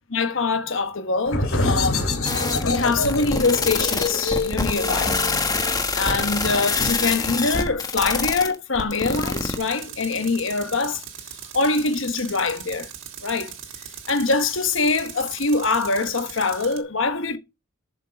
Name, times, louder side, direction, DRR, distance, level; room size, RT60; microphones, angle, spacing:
voice 1, 0.1-2.1 2.6-5.2 5.9-11.0 11.5-12.9 13.2-13.5 14.1-17.4, left 3 dB, 65° left, 1.3 m, -23 dB
sound 1, 1.3-6.7, left 3 dB, 90° left, 3.0 m, -26 dB
sound 2, 2.2-9.6, left 3 dB, 20° left, 1.3 m, -25 dB
Tools, 9.1-16.8, right 9 dB, 65° right, 1.6 m, -39 dB
7.4 x 6.4 x 5.1 m
head